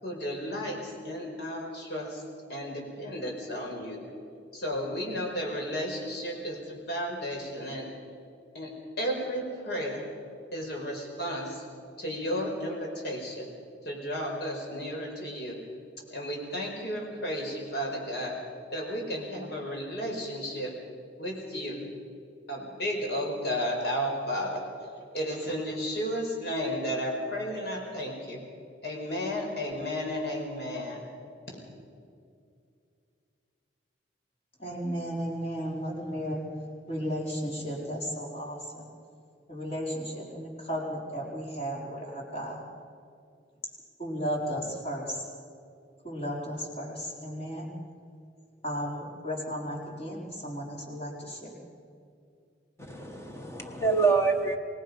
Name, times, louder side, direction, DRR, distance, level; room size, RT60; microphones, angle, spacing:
voice 1, 0.0-2.2 2.5-4.0 4.5-7.9 8.5-10.0 10.5-11.6 12.0-13.5 13.8-15.6 16.1-18.4 18.7-20.7 21.2-21.8 22.5-24.6 25.1-28.4 28.8-31.0 31.5-31.6, equal, 60° left, 0 dB, 5.2 m, -33 dB
voice 2, 34.6-36.4 36.9-38.9 39.5-42.6 44.0-45.2 46.0-47.7 48.6-51.5, equal, 35° left, -2 dB, 4.3 m, -34 dB
voice 3, 52.8-54.6, right 4 dB, 15° left, 4 dB, 1.2 m, -26 dB
25.0 x 20.0 x 5.5 m, 2.4 s
head